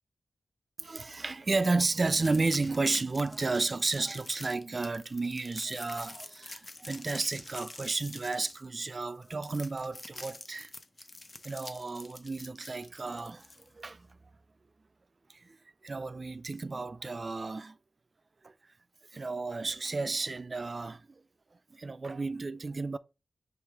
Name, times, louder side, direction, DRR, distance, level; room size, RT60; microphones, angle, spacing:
voice 1, 0.8-10.7 11.4-13.5 13.7-14.1 15.4-15.6 15.8-17.8 18.4-18.5 19.1-21.1 21.7-23.0, right 3 dB, 40° right, 0.3 m, -32 dB
sound 1, 2.2-13.9, left 2 dB, 35° left, 0.6 m, -46 dB
4.7 x 3.2 x 3.4 m
cardioid pair, 70°, 0 cm